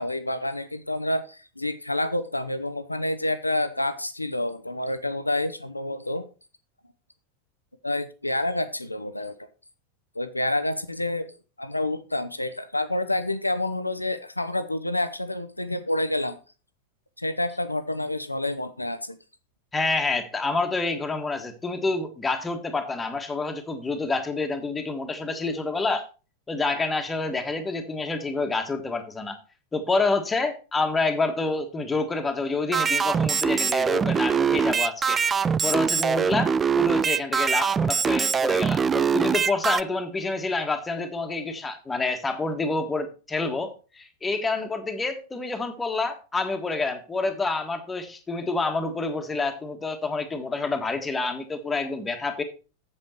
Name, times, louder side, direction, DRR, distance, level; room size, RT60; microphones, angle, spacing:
voice 1, 0.0-6.2 7.8-9.3 10.1-11.3 11.6-16.4 17.2-19.2, left 1 dB, 85° left, 12 dB, 0.9 m, -28 dB
voice 2, 19.7-26.0 26.5-29.4 29.7-35.2 35.6-52.4, left 3 dB, 15° left, 7 dB, 1.6 m, -28 dB
sound 1, 32.7-39.8, right 6 dB, 20° right, 0.4 m, -23 dB
7.9 x 7.8 x 4.4 m, 0.34 s
figure-of-eight pair, 90°, 0 cm